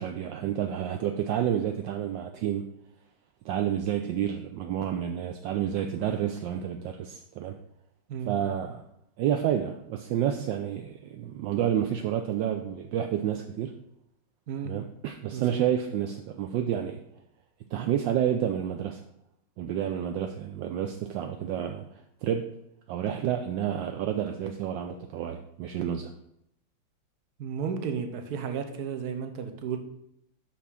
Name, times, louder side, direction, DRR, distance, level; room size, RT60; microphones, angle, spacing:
voice 1, 0.0-2.6 3.4-7.6 8.3-8.8 9.2-13.7 14.6-17.0 17.7-19.0 19.6-21.8 22.2-22.5 22.9-26.1, right 10 dB, 75° right, 5 dB, 1.1 m, -29 dB
voice 2, 27.4-29.8, right 7 dB, 55° right, 6 dB, 1.2 m, -33 dB
6.2 x 5.9 x 5.6 m, 0.78 s
omnidirectional pair, 2.4 m